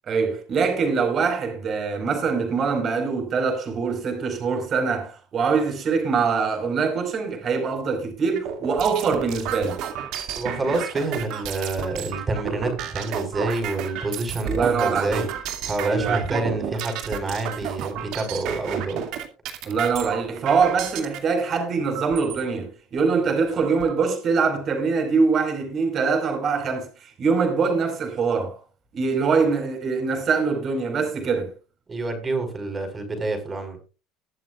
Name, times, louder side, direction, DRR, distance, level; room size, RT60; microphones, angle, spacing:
voice 1, 0.1-9.8 14.4-15.3 15.8-16.5 19.6-28.6 28.9-31.5, right 5 dB, 45° right, 4.6 m, -23 dB
sound 1, 8.4-21.2 21.9-22.4 23.0-23.1 23.4-24.0, right 9 dB, 70° right, 2.3 m, -32 dB
voice 2, 10.4-15.2 15.7-19.0 31.9-33.8, right 2 dB, 25° right, 5.1 m, -27 dB
21.5 x 7.4 x 2.4 m
supercardioid pair, 90°, 0 cm